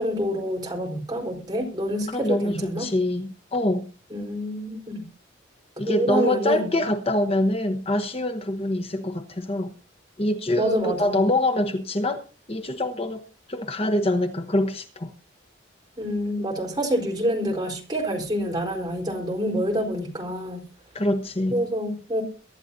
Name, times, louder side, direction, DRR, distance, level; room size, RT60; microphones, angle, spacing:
voice 1, 0.0-2.9 4.1-5.1 5.8-6.7 10.6-11.3 16.0-20.7 21.5-22.2, equal, 20° right, -1 dB, 4.2 m, -27 dB
voice 2, 2.1-3.9 5.8-9.7 10.2-12.2 12.5-13.2 13.5-15.1 20.9-21.6, left 1 dB, 30° left, 7 dB, 1.0 m, -25 dB
23.0 x 11.5 x 2.7 m, 0.34 s
head